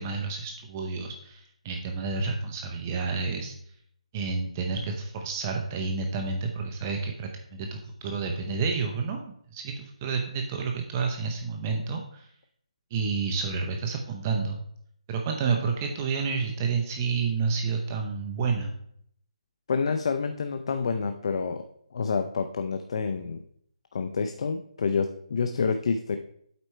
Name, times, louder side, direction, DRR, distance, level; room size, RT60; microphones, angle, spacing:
voice 1, 0.0-3.5 4.1-9.2 9.5-12.3 12.9-14.6 15.1-18.7, right 4 dB, 20° right, 3 dB, 0.7 m, -30 dB
voice 2, 19.7-21.6 21.9-23.4 23.9-26.2, left 5 dB, 50° left, 7 dB, 0.6 m, -28 dB
8.3 x 4.4 x 4.3 m, 0.67 s
hypercardioid pair, 165°, 4 cm